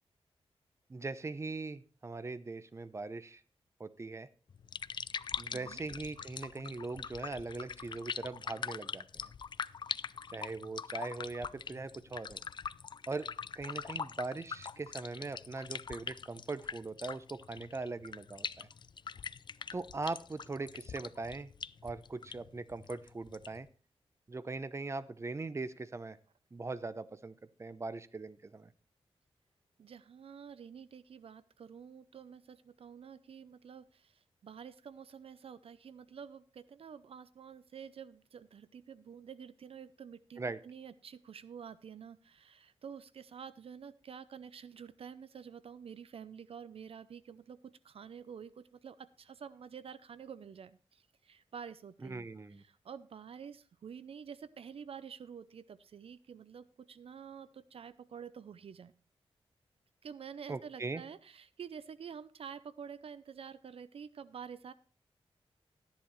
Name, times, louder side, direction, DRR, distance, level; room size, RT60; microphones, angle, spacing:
voice 1, 0.9-3.4 3.8-4.3 5.4-9.3 10.3-12.4 13.1-13.3 13.6-18.7 19.7-21.5 21.8-23.7 24.3-26.2 26.5-28.7 40.4-40.6 52.0-52.6 60.5-61.0, right 3 dB, 25° right, 14 dB, 0.7 m, -40 dB
sound 1, 4.5-23.7, left 6 dB, 50° left, 0.4 m, -43 dB
voice 2, 29.8-52.3 52.6-58.9 60.0-64.7, right 7 dB, 70° right, 15 dB, 0.5 m, -49 dB
13.5 x 10.5 x 3.1 m, 0.38 s
wide cardioid pair, 95°, 10 cm